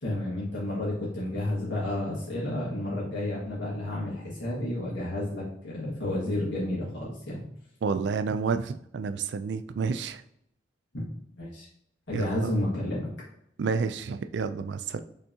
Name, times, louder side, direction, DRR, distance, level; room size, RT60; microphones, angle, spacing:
voice 1, 0.0-7.4 10.9-11.0 11.4-11.7 12.1-13.1, left 1 dB, 75° left, -7 dB, 1.7 m, -31 dB
voice 2, 7.8-10.2 12.1-12.5 13.6-15.0, right 5 dB, 65° right, 10 dB, 0.4 m, -30 dB
5.6 x 3.4 x 2.8 m, 0.75 s
head